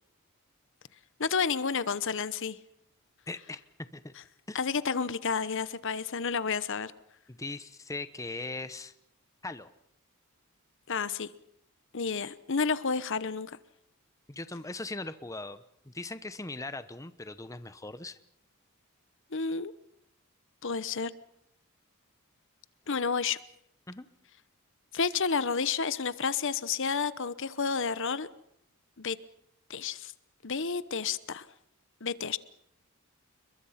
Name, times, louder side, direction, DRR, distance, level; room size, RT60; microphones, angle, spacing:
voice 1, 1.2-2.6 4.5-6.9 10.9-11.3 11.9-13.6 19.3-19.7 20.6-21.1 22.9-23.4 24.9-28.3 29.0-29.2 29.7-30.1 30.4-31.5 32.0-32.4, left 5 dB, 60° left, 15 dB, 1.0 m, -30 dB
voice 2, 3.3-3.6 3.9-4.1 4.5-4.6 7.3-8.9 9.4-9.7 14.3-18.2 23.9-24.1, left 2 dB, 15° left, 12 dB, 0.8 m, -39 dB
30.0 x 22.0 x 5.8 m, 0.75 s
head